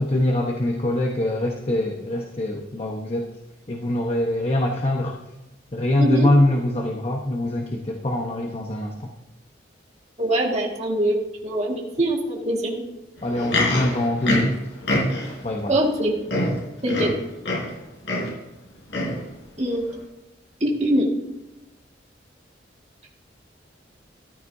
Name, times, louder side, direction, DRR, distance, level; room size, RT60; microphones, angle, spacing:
voice 1, 0.0-3.3 3.7-5.2 5.7-9.1 13.2-14.5 15.4-15.8, left 1 dB, 35° left, 1 dB, 0.9 m, -23 dB
voice 2, 6.0-6.3 10.2-11.2 11.4-12.8 15.7-16.1 16.8-17.1 19.6-19.9 20.6-21.1, right 1 dB, 35° right, -1 dB, 1.9 m, -22 dB
Livestock farm animals working animals, 13.2-15.4 16.0-16.1 16.3-17.8 18.0-18.4 18.9-19.2 19.9-20.0, left 1 dB, 70° left, 4.2 m, -25 dB
14.0 x 13.0 x 2.7 m, 0.99 s
head